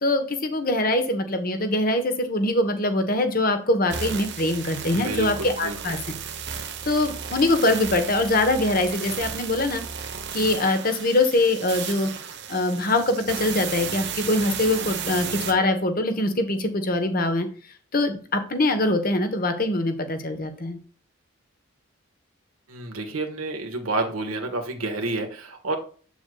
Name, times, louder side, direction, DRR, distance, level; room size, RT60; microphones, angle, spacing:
voice 1, 0.0-6.0 6.8-9.8 10.3-12.1 12.5-17.5 17.9-20.8, left 2 dB, 40° left, 7 dB, 1.1 m, -23 dB
sound 1, 3.9-15.5, right 7 dB, 50° right, 1.0 m, -34 dB
voice 2, 4.9-6.0 22.7-25.8, right 2 dB, 80° right, 3 dB, 1.5 m, -29 dB
8.0 x 7.0 x 2.3 m, 0.40 s
head